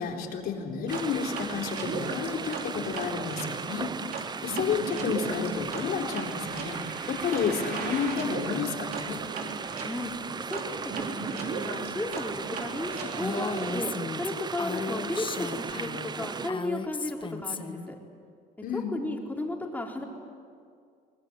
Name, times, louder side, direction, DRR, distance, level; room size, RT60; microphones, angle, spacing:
voice 1, 0.0-3.9 4.4-6.8 7.1-9.2 18.6-18.9, left 6 dB, 65° left, 2 dB, 3.9 m, -31 dB
sound 1, 0.9-16.5, right 5 dB, 25° right, 0.6 m, -37 dB
sound 2, 0.9-13.7, right 4 dB, 60° right, 3.8 m, -37 dB
voice 2, 9.8-10.1 10.5-13.9 14.2-18.0 18.7-20.0, left 1 dB, 10° left, 0 dB, 4.1 m, -34 dB
Female speech woman speaking, 13.2-17.9, left 4 dB, 30° left, 1.4 m, -35 dB
23.5 x 20.0 x 9.8 m, 2.3 s
cardioid pair, 110°, 17 cm